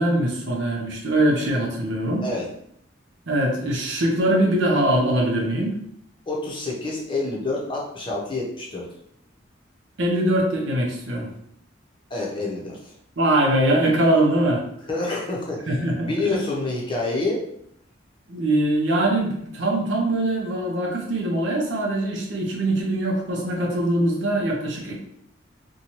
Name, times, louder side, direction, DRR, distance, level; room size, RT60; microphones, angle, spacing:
voice 1, 0.0-2.2 3.3-5.8 10.0-11.3 13.2-14.6 15.7-16.4 18.3-24.9, right 1 dB, 70° right, 0 dB, 0.7 m, -22 dB
voice 2, 6.3-8.9 12.1-12.9 14.9-15.6 16.0-17.4, left 2 dB, 25° left, -3 dB, 0.7 m, -27 dB
2.7 x 2.2 x 3.0 m, 0.69 s
head